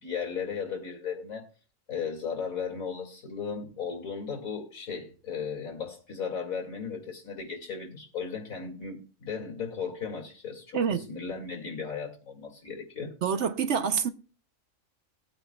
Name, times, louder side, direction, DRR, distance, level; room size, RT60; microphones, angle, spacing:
voice 1, 0.0-1.5 1.9-13.1, left 6 dB, 80° left, 2.8 m, -36 dB
voice 2, 10.7-11.1 13.2-14.1, right 7 dB, 60° right, 1.0 m, -26 dB
20.0 x 8.9 x 2.3 m
omnidirectional pair, 1.4 m